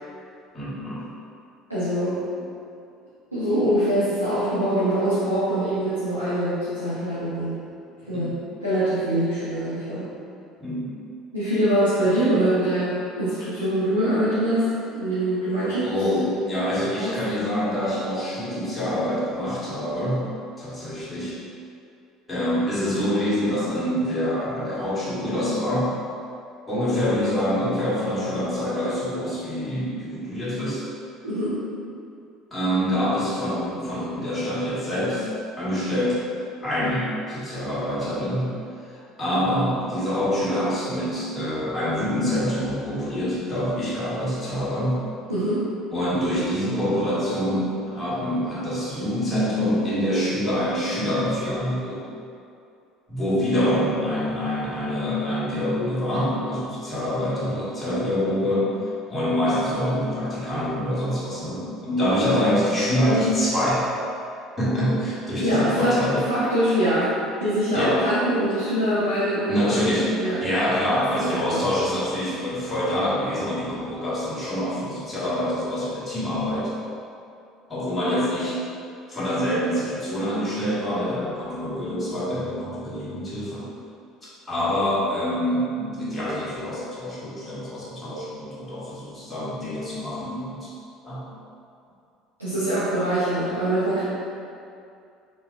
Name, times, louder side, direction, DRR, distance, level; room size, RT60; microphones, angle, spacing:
voice 1, 0.5-1.1 8.1-8.3 10.6-10.9 15.8-20.2 20.6-21.4 22.3-25.9 26.7-30.8 32.5-35.3 35.6-36.2 36.6-38.5 38.8-45.0 45.9-52.0 53.1-58.7 59.1-63.9 64.6-66.2 67.7-68.1 69.5-76.7 77.7-78.6 79.1-83.7 84.2-90.7 91.0-91.2, equal, 15° left, -10 dB, 1.3 m, -25 dB
voice 2, 1.7-2.2 3.3-7.6 8.1-8.3 8.6-10.1 11.3-15.9 17.0-17.2 31.2-31.6 45.3-45.7 65.4-66.0 66.3-67.1 67.4-69.8 70.2-70.4 71.5-71.7 92.4-94.0, right 1 dB, 85° right, -13 dB, 0.6 m, -23 dB
3.9 x 3.6 x 2.4 m, 2.5 s
figure-of-eight pair, 60°, 0 cm